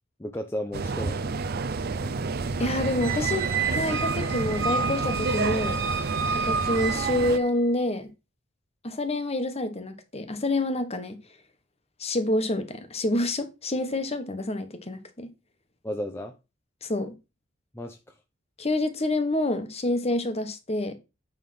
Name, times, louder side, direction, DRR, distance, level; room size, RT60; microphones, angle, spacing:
voice 1, 0.2-1.5 15.8-16.3 17.7-18.0, equal, 15° left, 0.7 m, -34 dB
sound 1, 0.7-7.4, right 4 dB, 50° right, 0.6 m, -29 dB
voice 2, 2.6-5.8 6.4-8.1 8.8-11.2 12.0-15.3 16.8-17.1 18.6-20.9, left 1 dB, 30° left, 1.2 m, -27 dB
Squeak, 3.0-7.5, right 5 dB, 75° right, 3.6 m, -30 dB
9.4 x 3.6 x 6.1 m
head